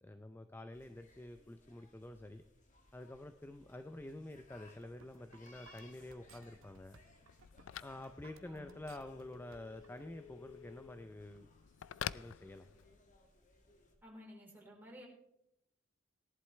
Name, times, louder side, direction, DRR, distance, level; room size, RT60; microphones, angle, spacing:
voice 1, 0.0-2.4 2.9-7.0 7.8-11.5 12.0-12.7, left 1 dB, 10° left, 7 dB, 0.5 m, -49 dB
sound 1, 0.7-13.9, left 2 dB, 40° left, 2.1 m, -66 dB
sound 2, 4.5-10.0, right 5 dB, 80° right, 0.8 m, -62 dB
Telephone, 5.3-13.1, left 10 dB, 75° left, 0.3 m, -50 dB
voice 2, 14.0-15.1, equal, 10° right, -3 dB, 3.8 m, -54 dB
18.0 x 11.0 x 3.2 m, 0.82 s
head